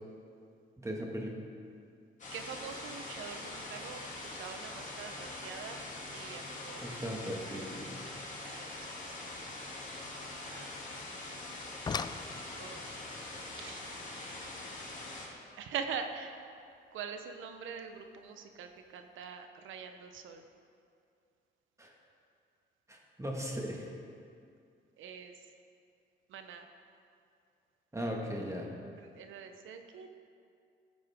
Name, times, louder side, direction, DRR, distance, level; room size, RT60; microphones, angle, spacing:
voice 1, 0.8-1.4 6.8-7.9 21.8-21.9 22.9-23.9 27.9-28.7, equal, 15° right, -1 dB, 1.8 m, -38 dB
sound 1, 2.2-15.3, left 2 dB, 40° left, 2.6 m, -43 dB
voice 2, 2.3-5.9 6.1-7.0 8.4-9.0 10.4-10.8 12.5-12.9 13.5-13.8 14.1-14.5 15.6-16.4 16.9-20.4 25.0-25.4 26.3-26.7 29.0-30.2, right 6 dB, 80° right, 6 dB, 1.0 m, -44 dB
sound 2, 11.5-16.6 18.0-18.1 18.7-18.9 19.2-19.3, left 5 dB, 20° left, 0.3 m, -44 dB
15.0 x 7.8 x 3.7 m, 2.4 s
cardioid pair, 90°, 20 cm